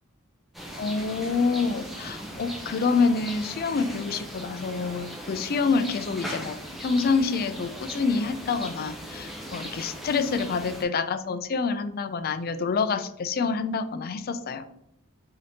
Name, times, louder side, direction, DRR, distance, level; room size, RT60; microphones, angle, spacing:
sound 1, 0.5-10.8, equal, ahead, 0.6 m, -39 dB
voice 1, 0.8-14.6, left 4 dB, 45° left, 10 dB, 0.3 m, -27 dB
5.1 x 2.8 x 2.7 m, 0.73 s
head